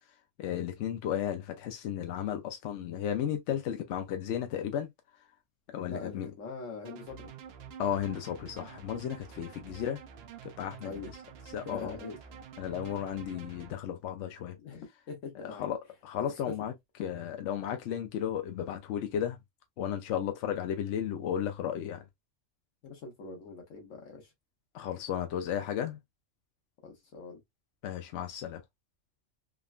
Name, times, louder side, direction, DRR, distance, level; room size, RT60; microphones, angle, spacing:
voice 1, 0.4-4.9 5.7-6.3 7.8-10.0 10.4-10.9 11.5-11.9 12.6-14.6 15.4-16.7 17.0-19.4 19.8-22.1 24.7-26.0 27.8-28.6, left 9 dB, 70° left, 0.9 m, -34 dB
voice 2, 5.9-7.3 10.8-11.1 11.6-12.2 14.6-15.7 16.2-16.3 22.8-24.3 26.8-27.4, left 4 dB, 90° left, 1.3 m, -42 dB
sound 1, 6.8-13.7, right 7 dB, 65° right, 0.7 m, -48 dB
3.6 x 2.1 x 2.4 m
omnidirectional pair, 1.3 m